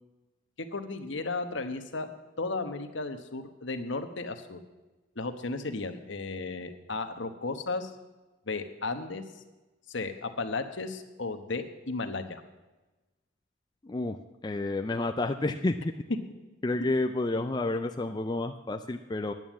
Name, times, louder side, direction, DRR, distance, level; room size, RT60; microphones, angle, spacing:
voice 1, 0.6-2.1 2.4-4.6 5.2-7.9 8.5-9.2 9.9-12.4, left 3 dB, 60° left, 8 dB, 1.1 m, -34 dB
voice 2, 13.8-14.2 14.4-15.8 16.6-19.3, left 2 dB, 20° left, 5 dB, 0.4 m, -30 dB
11.0 x 9.2 x 7.3 m, 1.1 s
head